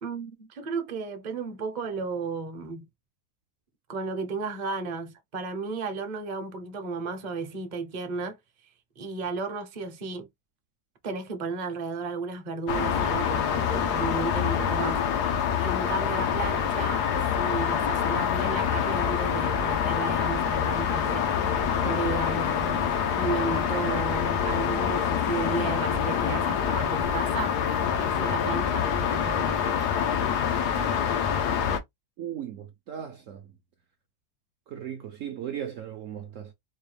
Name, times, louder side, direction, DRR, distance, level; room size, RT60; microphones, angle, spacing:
voice 1, 0.0-2.9 3.9-8.4 9.0-10.3 11.0-15.0 15.6-17.1 17.4-21.3 21.8-22.9 23.2-27.6 28.0-29.6, right 4 dB, 35° right, 0.8 m, -33 dB
sound 1, 12.7-31.8, left 8 dB, 90° left, 1.4 m, -26 dB
voice 2, 32.2-33.5 34.7-36.5, right 9 dB, 65° right, 0.9 m, -37 dB
4.2 x 2.3 x 3.3 m
omnidirectional pair, 1.7 m